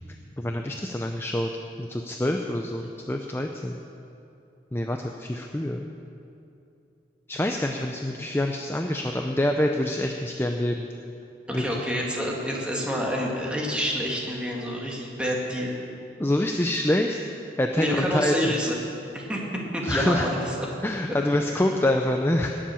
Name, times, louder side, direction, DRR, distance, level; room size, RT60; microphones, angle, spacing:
voice 1, 0.4-1.5 1.8-3.8 4.7-5.8 7.3-10.9 11.5-11.8 16.2-17.2 17.6-18.3 19.8-20.2 20.8-22.5, left 1 dB, 15° left, 3 dB, 0.5 m, -26 dB
voice 2, 11.5-15.8 17.8-18.8 19.1-19.4 19.7-20.7, equal, 5° right, -2 dB, 2.0 m, -28 dB
19.0 x 7.6 x 7.0 m, 2.7 s
head